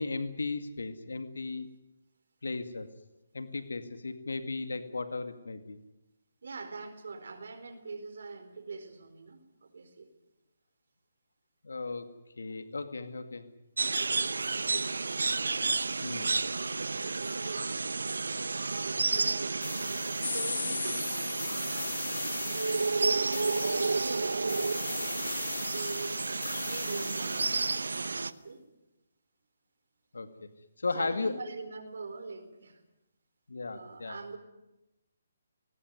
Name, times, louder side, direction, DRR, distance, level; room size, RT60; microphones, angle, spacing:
voice 1, 0.0-1.7 2.4-2.9 3.3-5.8 11.6-12.1 12.4-13.5 16.0-16.4 30.1-30.5 30.8-31.3 33.5-34.2, left 3 dB, 85° left, 10 dB, 2.1 m, -35 dB
voice 2, 6.4-10.1 13.8-15.5 16.5-22.2 22.8-26.2 26.6-27.6 27.9-28.6 30.9-32.8 33.7-34.4, right 4 dB, 70° right, 8 dB, 4.5 m, -44 dB
sound 1, 13.8-28.3, right 3 dB, 85° right, 1.0 m, -31 dB
sound 2, 19.6-28.1, left 7 dB, 55° left, 1.1 m, -39 dB
20.5 x 19.0 x 9.6 m, 0.94 s
hypercardioid pair, 155°, 0 cm